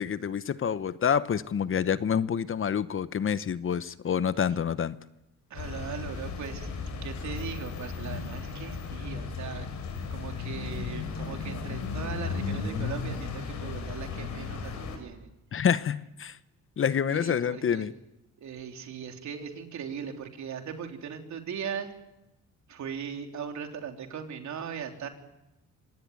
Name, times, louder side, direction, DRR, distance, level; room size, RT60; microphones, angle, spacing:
voice 1, 0.0-5.0 15.5-16.4 16.8-17.9, left 7 dB, 45° left, 1.0 m, -27 dB
sound 1, 5.5-15.0, left 5 dB, 80° left, 5.8 m, -35 dB
voice 2, 5.5-9.7 10.0-15.3 17.1-17.9 18.4-21.9 22.7-25.1, right 7 dB, 65° right, 3.6 m, -39 dB
26.0 x 18.5 x 9.6 m
cardioid pair, 90°, 30 cm